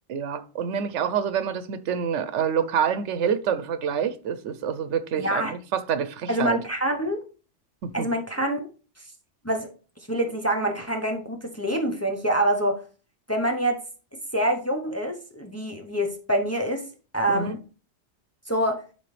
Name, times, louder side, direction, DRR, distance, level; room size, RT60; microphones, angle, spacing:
voice 1, 0.1-6.6 7.8-8.1 17.3-17.6, right 7 dB, 85° right, 1.0 m, -27 dB
voice 2, 5.2-5.5 6.3-7.2 7.9-8.7 9.4-9.7 10.1-12.8 13.3-13.8 14.3-17.6 18.5-18.8, right 1 dB, 15° left, 0.7 m, -26 dB
11.0 x 3.8 x 3.2 m
omnidirectional pair, 1.2 m